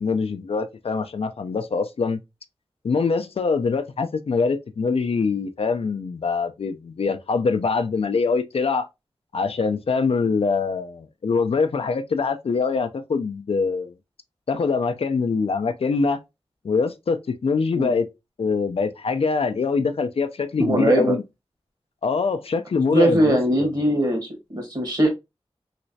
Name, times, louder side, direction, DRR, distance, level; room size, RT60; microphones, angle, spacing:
voice 1, 0.0-2.2 2.8-8.9 9.3-13.9 14.5-16.2 16.6-18.1 18.4-21.2 22.0-23.7, left 4 dB, 70° left, 0.4 m, -24 dB
voice 2, 20.6-21.2 22.9-25.1, right 1 dB, 40° right, 1.4 m, -21 dB
3.2 x 3.0 x 2.7 m
wide cardioid pair, 75°, 10 cm